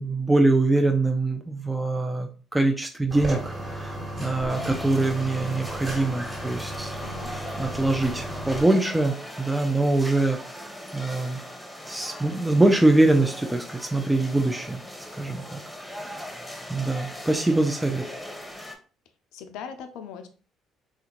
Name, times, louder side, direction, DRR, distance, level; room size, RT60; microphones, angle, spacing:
voice 1, 0.0-7.0 7.3-11.4 11.9-14.8 15.1-15.6 15.9-16.4 16.7-18.0, right 2 dB, 10° right, 3 dB, 0.4 m, -24 dB
sound 1, 3.1-8.6, right 1 dB, 30° right, 1.3 m, -34 dB
sound 2, 4.5-18.8, left 1 dB, 10° left, 0.9 m, -40 dB
voice 2, 7.0-7.3 19.3-20.3, left 7 dB, 70° left, 8 dB, 0.4 m, -39 dB
3.4 x 2.4 x 2.9 m, 0.37 s
hypercardioid pair, 55°, 0 cm